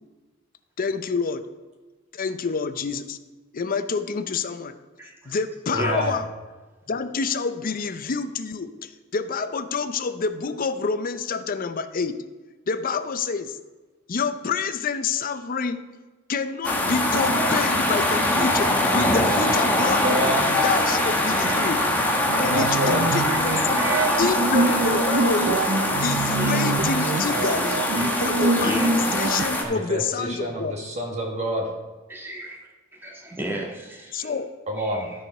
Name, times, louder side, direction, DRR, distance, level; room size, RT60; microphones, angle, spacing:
voice 1, 0.8-1.4 2.1-3.2 3.5-4.7 5.3-6.2 6.9-12.2 12.7-13.6 14.1-15.8 16.3-18.7 18.9-20.2 20.5-21.8 22.4-25.6 26.0-27.8 28.2-28.8 29.1-30.7 34.1-34.5, left 5 dB, 45° left, 11 dB, 0.6 m, -27 dB
voice 2, 5.0-5.4 5.8-6.0 19.9-20.0 20.7-20.8 21.3-21.7 22.1-22.4 23.3-24.8 25.4-25.5 26.4-27.6 27.9-28.2 28.6-29.3 29.5-29.8 32.1-32.6 32.9-34.3 34.8-35.2, right 1 dB, 10° right, -2 dB, 1.6 m, -36 dB
voice 3, 5.7-6.1 20.0-20.5 22.5-23.2 29.6-31.7 34.7-35.1, equal, 35° right, 0 dB, 1.4 m, -28 dB
sound 1, 16.6-29.6, left 1 dB, 10° left, 1.1 m, -23 dB
sound 2, 22.3-29.4, right 3 dB, 65° right, 0.5 m, -26 dB
12.5 x 4.9 x 5.4 m, 1.2 s
head